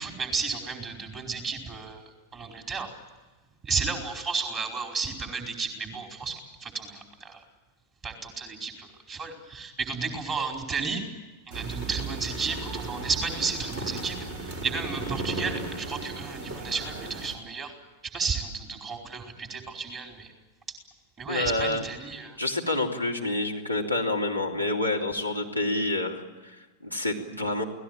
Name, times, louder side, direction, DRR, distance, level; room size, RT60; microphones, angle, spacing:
voice 1, 0.0-2.0 2.3-2.9 3.6-6.3 6.6-7.4 8.0-11.0 11.5-17.7 18.1-20.3 21.2-22.4, right 4 dB, 30° right, 3 dB, 4.7 m, -33 dB
sound 1, 11.5-17.4, right 3 dB, 60° right, 5.7 m, -35 dB
voice 2, 21.3-21.8 22.4-27.6, left 2 dB, 85° right, 5 dB, 3.3 m, -28 dB
28.0 x 18.0 x 9.1 m, 1.2 s
figure-of-eight pair, 90°, 0 cm